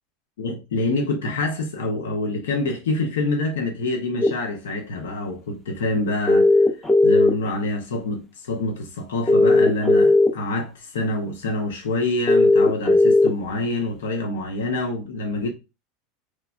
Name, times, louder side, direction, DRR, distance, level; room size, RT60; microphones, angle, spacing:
voice 1, 0.4-6.5 7.0-15.5, left 2 dB, 90° left, 0.7 m, -26 dB
sound 1, 4.2-4.3 6.3-7.5 9.3-10.3 12.3-13.3, left 2 dB, 10° left, 0.5 m, -15 dB
3.1 x 2.1 x 2.4 m
supercardioid pair, 115°, 0 cm